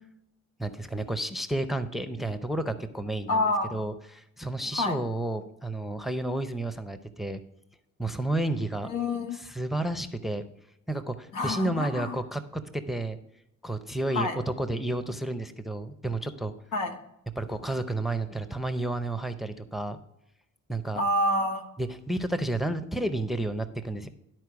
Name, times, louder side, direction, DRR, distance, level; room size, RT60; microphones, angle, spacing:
voice 1, 0.6-3.4 3.7-7.4 8.0-8.9 9.3-10.4 10.9-13.2 13.6-16.5 17.4-20.0 20.7-21.0 21.8-24.1, right 1 dB, ahead, 11 dB, 0.6 m, -31 dB
voice 2, 3.3-3.8 4.7-5.0 8.8-9.4 11.3-12.2 14.1-14.3 16.7-16.9 20.9-21.7, left 1 dB, 85° left, 5 dB, 1.4 m, -27 dB
11.5 x 4.5 x 4.7 m, 0.85 s
cardioid pair, 90°, 30 cm